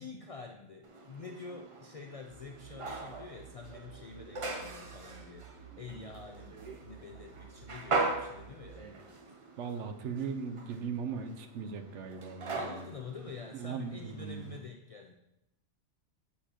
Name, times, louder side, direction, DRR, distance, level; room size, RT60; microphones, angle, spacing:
voice 1, 0.0-8.9 12.5-15.1, left 5 dB, 65° left, 3 dB, 0.3 m, -47 dB
sound 1, 0.8-14.6, right 3 dB, 35° right, 0.5 m, -40 dB
sound 2, 2.3-8.7, right 8 dB, 65° right, 1.8 m, -54 dB
voice 2, 5.7-6.1 8.8-9.0 9.6-12.9 13.5-14.5, right 6 dB, 85° right, 7 dB, 0.9 m, -39 dB
7.2 x 6.7 x 2.9 m, 0.87 s
omnidirectional pair, 1.2 m